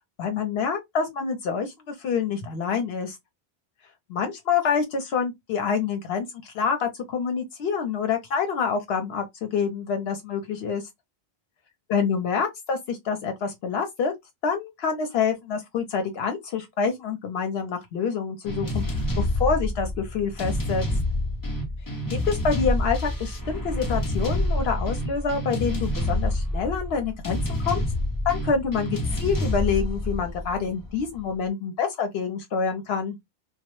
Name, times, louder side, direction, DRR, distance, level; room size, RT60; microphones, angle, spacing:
voice 1, 0.2-3.2 4.1-10.8 11.9-14.1 14.4-20.8 22.1-27.8 28.2-33.2, left 6 dB, 80° left, 0.8 m, -27 dB
sound 1, 18.5-31.2, left 1 dB, 30° left, 0.4 m, -27 dB
2.1 x 2.0 x 2.9 m
omnidirectional pair, 1.0 m